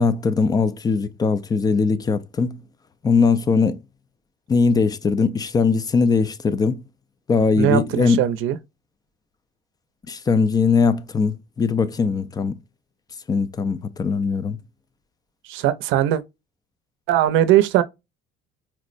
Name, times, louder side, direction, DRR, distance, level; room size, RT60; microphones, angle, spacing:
voice 1, 0.0-2.6 3.0-3.8 4.5-6.8 7.3-8.2 10.1-12.5 13.3-14.6, left 5 dB, 20° left, 0.3 m, -20 dB
voice 2, 7.6-8.6 15.4-16.2 17.1-17.8, right 12 dB, 75° right, 0.5 m, -19 dB
4.4 x 2.0 x 2.5 m
cardioid pair, 115°, 20 cm